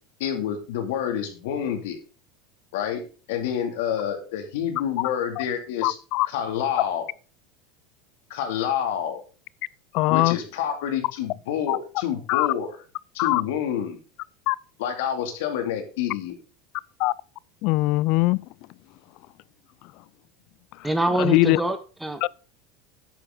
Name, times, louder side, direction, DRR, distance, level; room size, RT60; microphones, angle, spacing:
voice 1, 0.2-2.0 2.7-3.0 3.3-6.0 6.3-7.1 8.3-9.2 10.1-12.8 13.1-14.0 14.8-16.4, left 9 dB, 80° left, 2.5 m, -28 dB
voice 2, 5.8-6.3 9.9-10.4 11.7-11.8 12.3-12.5 13.2-13.4 14.5-14.6 17.0-17.1 17.6-18.4 21.2-21.6 22.2-22.3, left 20 dB, 60° left, 0.4 m, -21 dB
voice 3, 20.8-22.3, right 1 dB, 5° right, 1.6 m, -25 dB
10.5 x 8.6 x 3.8 m
supercardioid pair, 110°, 0 cm